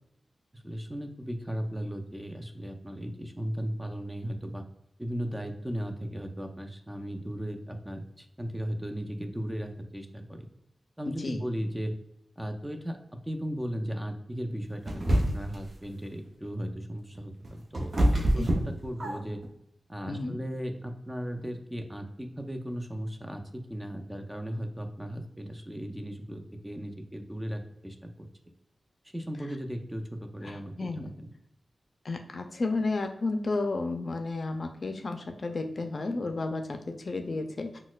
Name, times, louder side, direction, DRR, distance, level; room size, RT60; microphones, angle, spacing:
voice 1, 0.5-4.6 5.0-10.5 11.0-11.9 12.4-19.4 19.9-28.3 29.1-31.3, equal, 10° right, 4 dB, 0.5 m, -36 dB
voice 2, 11.1-11.4 18.4-18.5 20.1-20.4 30.4-31.1 32.0-37.8, left 3 dB, 60° left, 5 dB, 0.4 m, -32 dB
sound 1, 14.9-15.6 17.2-19.5, right 1 dB, 60° right, 0.7 m, -26 dB
4.1 x 2.2 x 2.3 m, 0.78 s
cardioid pair, 50°, 0 cm